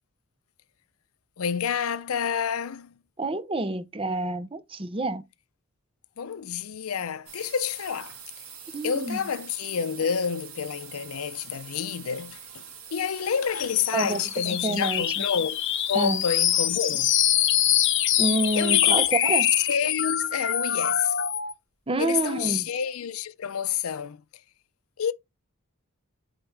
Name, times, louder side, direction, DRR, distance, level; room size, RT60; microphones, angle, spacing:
voice 1, 1.4-2.9 6.2-8.2 8.8-12.6 12.9-15.6 15.9-17.1 18.5-19.3 19.7-21.1 22.0-24.2 25.0-25.1, left 7 dB, 80° left, 0.5 m, -29 dB
voice 2, 3.2-5.2 8.7-9.2 13.9-15.0 15.9-16.2 18.2-19.5 21.9-22.7, right 2 dB, 25° right, 0.7 m, -28 dB
sound 1, 7.3-19.9, right 8 dB, 75° right, 2.5 m, -45 dB
sound 2, 13.5-21.5, left 11 dB, 55° left, 0.9 m, -24 dB
8.0 x 4.3 x 3.4 m
head